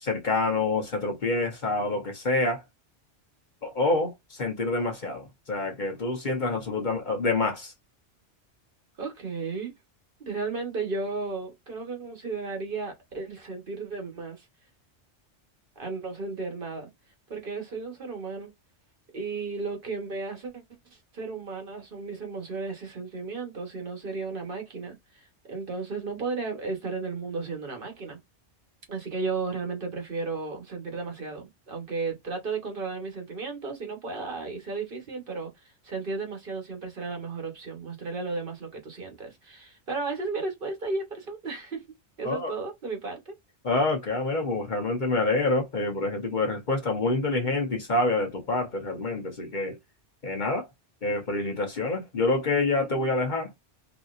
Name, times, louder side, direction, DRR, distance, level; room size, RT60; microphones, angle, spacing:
voice 1, 0.0-2.6 3.6-7.7 42.2-42.5 43.6-49.7 50.2-50.7 51.0-53.6, left 2 dB, 45° left, 1.0 m, -27 dB
voice 2, 9.0-9.7 10.2-14.5 15.8-16.9 17.3-18.5 19.1-20.6 20.9-28.2 28.9-35.5 35.8-41.8 42.2-43.3, right 4 dB, 50° right, 1.1 m, -34 dB
3.9 x 2.8 x 2.4 m
omnidirectional pair, 1.2 m